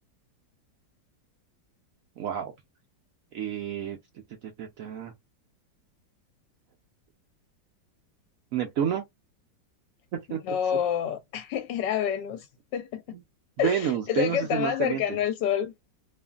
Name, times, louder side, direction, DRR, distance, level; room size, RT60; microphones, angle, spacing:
voice 1, 2.2-2.5 3.3-4.0 4.6-5.1 8.5-9.0 10.1-10.4 13.1-13.2 13.6-15.2, right 8 dB, 85° right, 0.7 m, -29 dB
voice 2, 10.3-12.5 12.7-13.0 13.6-15.7, left 9 dB, 75° left, 1.2 m, -28 dB
2.8 x 2.5 x 2.3 m
omnidirectional pair, 2.0 m